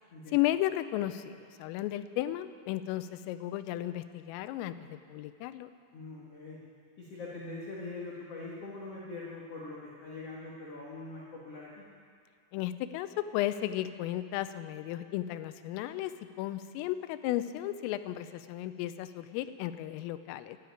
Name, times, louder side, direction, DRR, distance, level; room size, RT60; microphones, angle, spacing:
voice 1, 0.3-5.7 12.5-16.1 16.4-20.6, left 14 dB, 90° left, 12 dB, 3.3 m, -34 dB
voice 2, 5.9-6.6 7.0-11.8, left 3 dB, 65° left, -6 dB, 1.5 m, -43 dB
13.5 x 11.5 x 9.3 m, 2.2 s
omnidirectional pair, 5.8 m